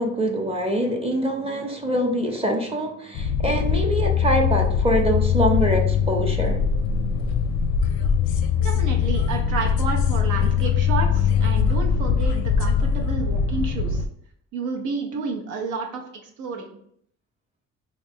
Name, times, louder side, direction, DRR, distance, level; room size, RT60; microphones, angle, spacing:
voice 1, 0.0-6.6, right 1 dB, 20° right, 2 dB, 0.7 m, -24 dB
sound 1, 3.1-14.1, left 7 dB, 90° left, 0.5 m, -22 dB
voice 2, 8.6-14.0 14.5-16.7, right 4 dB, 85° right, 2 dB, 0.7 m, -30 dB
3.1 x 2.5 x 3.5 m, 0.66 s
cardioid pair, 90°, 30 cm